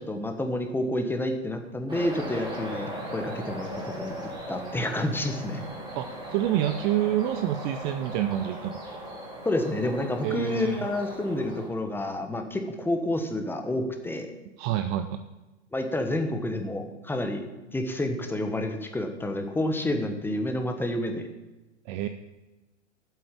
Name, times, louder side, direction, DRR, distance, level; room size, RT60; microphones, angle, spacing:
voice 1, 0.0-4.1 4.5-5.6 9.4-14.3 15.7-17.4 17.7-21.2, left 1 dB, 5° left, 5 dB, 1.2 m, -29 dB
sound 1, 1.9-11.7, right 1 dB, 15° right, 3.5 m, -38 dB
voice 2, 6.0-8.8 10.2-10.9 14.6-15.2 21.9-22.1, right 12 dB, 30° right, 9 dB, 0.5 m, -27 dB
8.2 x 7.8 x 8.7 m, 1.1 s
figure-of-eight pair, 105°, 36 cm